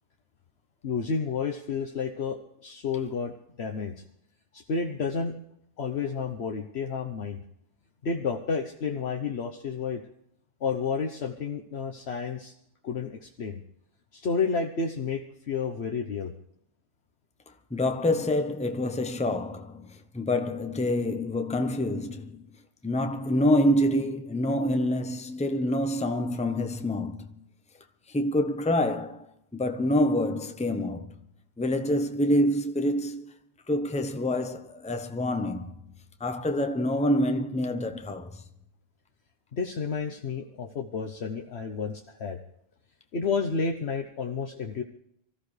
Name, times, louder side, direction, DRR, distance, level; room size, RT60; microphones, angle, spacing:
voice 1, 0.8-3.9 4.5-5.3 5.8-7.4 8.0-10.0 10.6-12.5 12.8-13.6 14.1-16.3 39.5-42.4 43.1-44.8, left 5 dB, 70° left, 1.3 m, -31 dB
voice 2, 17.7-22.5 22.8-27.4 28.1-29.3 29.5-31.1 31.6-33.3 33.7-35.8 36.2-38.4, left 1 dB, 5° left, 0.9 m, -27 dB
24.5 x 14.5 x 3.3 m
omnidirectional pair, 1.1 m